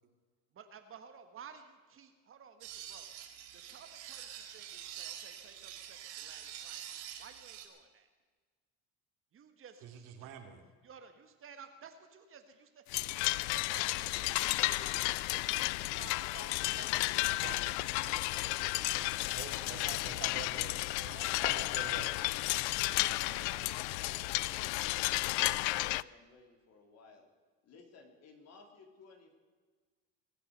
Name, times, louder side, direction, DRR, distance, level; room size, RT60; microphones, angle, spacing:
voice 1, 0.6-3.1 3.5-6.9 7.2-8.1 9.3-10.5 10.8-19.4 19.8-20.3 21.0-24.3, right 6 dB, 40° right, 7 dB, 1.7 m, -55 dB
sound 1, 2.6-7.7, right 10 dB, 85° right, 2.4 m, -46 dB
voice 2, 9.8-10.6 17.3-17.7 19.3-21.1 21.4-22.1, right 7 dB, 70° right, 4 dB, 2.8 m, -46 dB
sound 2, 12.9-26.0, left 21 dB, 90° left, 0.5 m, -33 dB
voice 3, 23.3-27.3 27.6-29.3, left 4 dB, 50° left, 2 dB, 3.8 m, -58 dB
22.5 x 8.7 x 6.7 m, 1.4 s
supercardioid pair, 105°, 33 cm